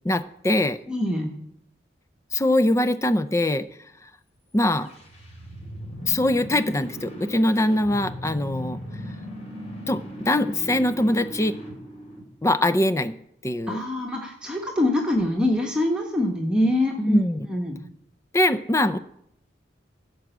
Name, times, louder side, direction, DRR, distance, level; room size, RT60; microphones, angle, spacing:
voice 1, 0.0-0.8 2.3-3.7 4.5-4.9 6.1-8.8 9.9-10.0 10.3-11.5 12.4-13.1 13.4-13.8 17.1-17.4 18.3-19.0, left 1 dB, 15° left, 12 dB, 0.4 m, -22 dB
voice 2, 0.9-1.3 13.7-17.8, left 1 dB, 5° right, -1 dB, 1.3 m, -24 dB
sound 1, 4.6-12.7, equal, 35° left, 3.6 m, -38 dB
15.5 x 6.1 x 7.9 m, 0.75 s
head